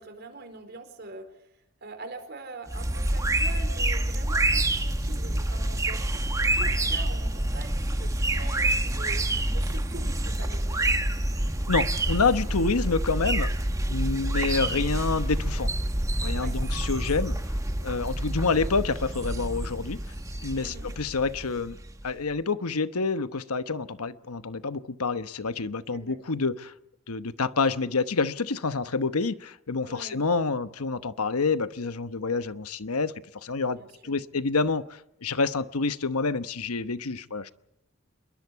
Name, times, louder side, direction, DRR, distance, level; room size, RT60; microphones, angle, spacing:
voice 1, 0.0-10.8 16.3-16.5 20.6-20.9 25.9-26.2 29.8-30.2 33.7-34.1, right 2 dB, 45° right, 7 dB, 4.2 m, -44 dB
sound 1, 2.7-22.1, right 1 dB, 15° right, 1.1 m, -27 dB
voice 2, 11.7-13.5 13.9-15.7 16.2-17.4 17.8-20.0 20.4-21.8 22.0-26.7 27.1-37.5, left 4 dB, 90° left, 12 dB, 1.0 m, -28 dB
28.0 x 22.0 x 4.7 m, 0.83 s
head